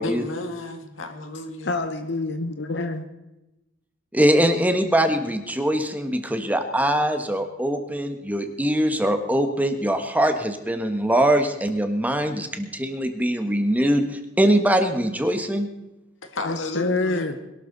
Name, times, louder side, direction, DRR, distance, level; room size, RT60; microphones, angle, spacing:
voice 1, 0.0-1.8 16.2-17.3, left 2 dB, 80° left, 1.9 m, -32 dB
voice 2, 1.6-3.1 16.4-17.4, left 3 dB, 60° left, 1.1 m, -26 dB
voice 3, 4.1-15.7, right 1 dB, 10° right, 1.3 m, -22 dB
22.0 x 12.5 x 4.0 m
head